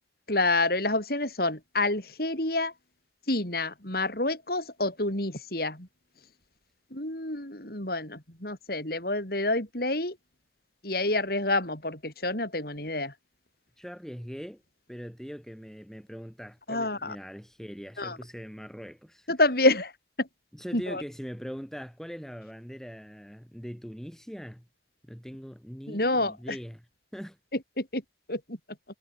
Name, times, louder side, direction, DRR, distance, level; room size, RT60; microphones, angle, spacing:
voice 1, 0.3-2.7 3.3-5.9 6.9-10.2 10.8-13.1 16.7-17.2 18.0-18.2 19.3-19.9 20.2-20.3 20.7-21.0 25.9-26.6 27.8-28.0 28.3-28.6, left 2 dB, 50° left, 5.9 m, -28 dB
voice 2, 13.8-14.6 14.9-19.3 20.5-24.7 25.0-26.9 27.1-27.4, equal, ahead, 6.3 m, -41 dB
head